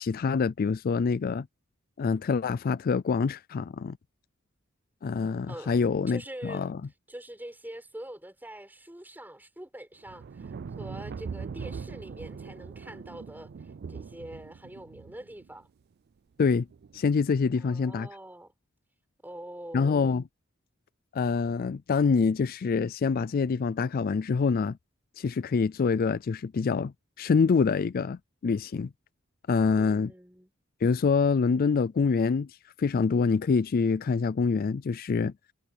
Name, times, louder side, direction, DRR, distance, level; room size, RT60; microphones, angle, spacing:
voice 1, 0.0-1.5 2.0-4.0 5.0-6.8 16.4-16.7 16.9-18.1 19.7-20.2 21.1-24.8 25.2-28.9 29.5-30.1 30.8-35.3, left 5 dB, 45° left, 0.4 m, -26 dB
voice 2, 5.5-5.8 6.1-6.7 7.1-13.5 13.9-15.7 17.6-18.5 19.2-20.0 29.8-30.5, right 1 dB, 10° right, 4.5 m, -44 dB
sound 1, 10.1-15.5 16.7-17.0, right 5 dB, 50° right, 0.4 m, -41 dB
head